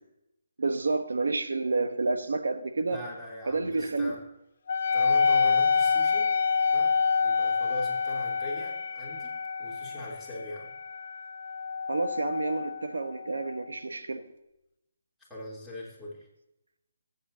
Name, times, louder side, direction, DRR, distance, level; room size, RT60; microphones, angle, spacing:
voice 1, 0.6-3.0 3.5-4.1 11.9-14.3, right 3 dB, 80° right, 9 dB, 1.2 m, -29 dB
voice 2, 2.9-4.2 4.9-6.3 6.7-6.9 7.2-9.3 9.6-10.7 15.2-16.3, left 1 dB, ahead, -8 dB, 3.5 m, -40 dB
Wind instrument woodwind instrument, 4.7-13.6, left 5 dB, 55° left, 0.6 m, -27 dB
15.5 x 8.6 x 2.8 m, 0.88 s
hypercardioid pair, 155°, 0 cm